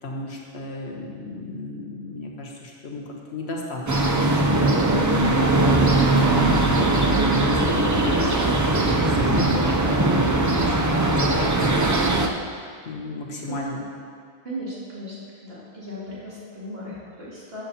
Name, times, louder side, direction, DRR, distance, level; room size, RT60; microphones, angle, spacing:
voice 1, 0.0-4.9 5.2-12.0 12.8-13.8, left 2 dB, 80° left, -1 dB, 1.5 m, -34 dB
sound 1, 3.9-12.3, right 2 dB, 25° right, 0.4 m, -20 dB
voice 2, 14.4-15.1 15.4-17.6, equal, 70° right, -9 dB, 3.0 m, -36 dB
14.0 x 7.6 x 2.9 m, 2.1 s
omnidirectional pair, 1.1 m